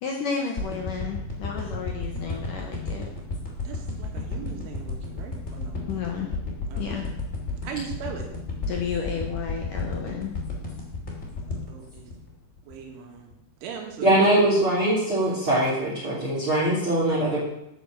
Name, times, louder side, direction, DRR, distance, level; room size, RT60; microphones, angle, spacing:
voice 1, 0.0-3.1 5.9-6.4 6.8-7.1 8.7-10.3, left 6 dB, 70° left, 1 dB, 2.0 m, -32 dB
sound 1, 0.6-12.9 13.3-13.4, left 3 dB, 20° left, 2.3 m, -32 dB
voice 2, 2.1-2.5 3.7-5.8 6.7-7.0 7.6-8.3 11.5-12.1 12.7-13.3 13.6-14.3 15.8-16.4, right 7 dB, 85° right, 2 dB, 4.5 m, -39 dB
voice 3, 14.0-17.4, right 1 dB, 30° right, -7 dB, 3.9 m, -22 dB
12.0 x 7.1 x 7.6 m, 0.83 s
omnidirectional pair, 5.4 m